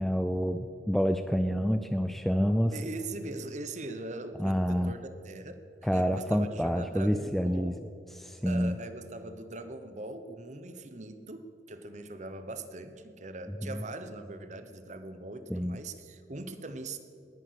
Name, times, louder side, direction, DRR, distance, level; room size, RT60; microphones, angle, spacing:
voice 1, 0.0-2.8 4.4-5.0 5.8-7.8 8.2-8.8 13.6-13.8 15.5-15.8, equal, ahead, 9 dB, 0.4 m, -28 dB
voice 2, 2.7-5.6 5.9-7.8 8.4-17.0, right 2 dB, 40° right, 10 dB, 1.0 m, -41 dB
19.0 x 10.0 x 6.4 m, 2.6 s
head